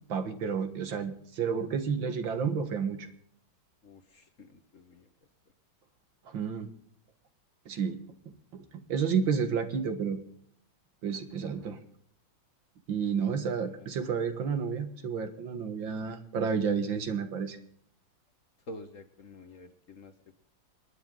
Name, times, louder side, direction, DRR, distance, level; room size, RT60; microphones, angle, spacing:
voice 1, 0.1-3.1 6.3-6.7 7.7-8.0 8.3-10.2 11.0-11.8 12.9-17.6, right 6 dB, 75° right, 9 dB, 2.3 m, -31 dB
voice 2, 3.8-5.1 11.1-11.3 13.0-13.2 13.6-13.9 18.7-20.4, left 1 dB, 45° left, 8 dB, 1.8 m, -49 dB
28.0 x 10.5 x 3.9 m, 0.62 s
omnidirectional pair, 2.1 m